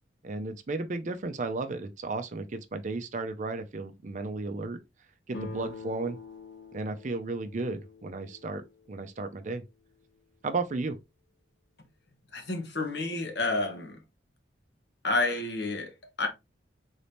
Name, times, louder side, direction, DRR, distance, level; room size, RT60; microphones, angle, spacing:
voice 1, 0.2-4.8 5.3-6.2 6.7-9.6 10.4-11.0, right 3 dB, 40° right, 0.5 m, -34 dB
sound 1, 5.3-8.9, left 3 dB, 85° left, 1.9 m, -45 dB
voice 2, 12.3-14.0 15.0-16.3, left 2 dB, 60° left, 1.1 m, -30 dB
4.0 x 2.7 x 3.3 m
head